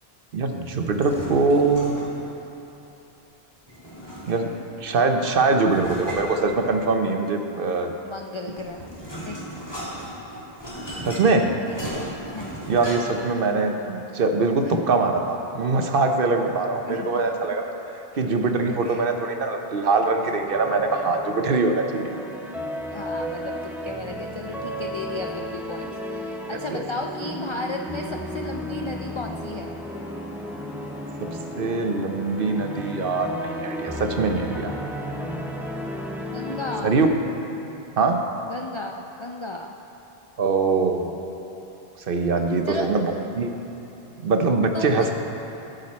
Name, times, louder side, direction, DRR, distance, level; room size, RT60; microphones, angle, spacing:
voice 1, 0.3-1.9 4.3-4.5 4.8-7.9 11.0-11.5 12.7-17.7 18.2-22.1 26.7-26.8 31.6-34.7 36.8-37.1 38.0-38.2 40.4-41.1 42.1-43.5 44.2-45.1, right 3 dB, 60° right, 4 dB, 0.9 m, -23 dB
sound 1, 0.9-2.2 3.7-4.7 5.7-7.1 8.2-13.3, equal, 25° left, 2.2 m, -36 dB
voice 2, 8.0-8.9 9.3-9.7 11.7-12.7 14.5-14.9 16.8-17.4 18.8-19.1 22.9-29.8 36.2-37.0 38.5-39.8 42.6-42.9 44.7-45.1, left 2 dB, 50° left, 2 dB, 0.3 m, -34 dB
sound 2, 20.4-36.8, equal, ahead, 0.6 m, -33 dB
16.0 x 6.6 x 4.2 m, 3.0 s
omnidirectional pair, 1.1 m